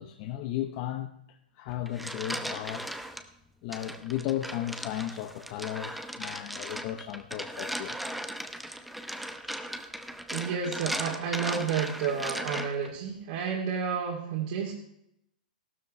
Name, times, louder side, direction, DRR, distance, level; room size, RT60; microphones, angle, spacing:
voice 1, 0.0-2.9 3.6-8.1, left 12 dB, 40° left, 5 dB, 0.8 m, -35 dB
sound 1, 1.7-3.2 3.7-12.9, right 1 dB, ahead, 0.8 m, -37 dB
voice 2, 10.3-14.7, right 6 dB, 55° right, -4 dB, 2.8 m, -31 dB
14.5 x 12.5 x 3.3 m, 0.76 s
hypercardioid pair, 130°, 5 cm